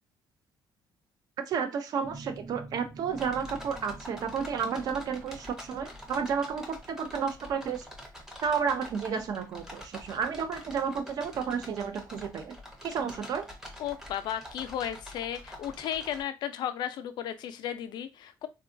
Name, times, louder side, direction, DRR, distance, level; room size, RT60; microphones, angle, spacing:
voice 1, 1.5-7.9 8.4-12.5 12.8-13.5, right 6 dB, 50° right, 8 dB, 0.4 m, -31 dB
sound 1, 2.0-11.4, right 2 dB, 85° right, 1.0 m, -51 dB
sound 2, 3.1-16.2, left 1 dB, 5° right, 0.6 m, -46 dB
voice 2, 13.8-18.5, left 10 dB, 65° left, 10 dB, 0.4 m, -34 dB
3.6 x 2.3 x 2.5 m, 0.26 s
cardioid pair, 170°, 8 cm